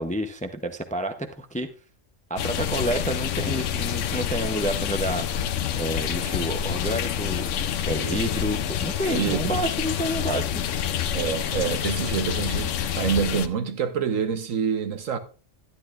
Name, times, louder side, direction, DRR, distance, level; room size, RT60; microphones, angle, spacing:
voice 1, 0.0-1.7 2.3-5.2 5.8-10.6, right 1 dB, 10° left, 0.4 m, -29 dB
sound 1, 2.4-13.5, left 9 dB, 75° left, 1.0 m, -27 dB
voice 2, 7.9-8.3 9.1-9.6 11.1-15.2, right 7 dB, 90° right, 1.3 m, -27 dB
12.0 x 10.5 x 2.5 m
omnidirectional pair, 1.3 m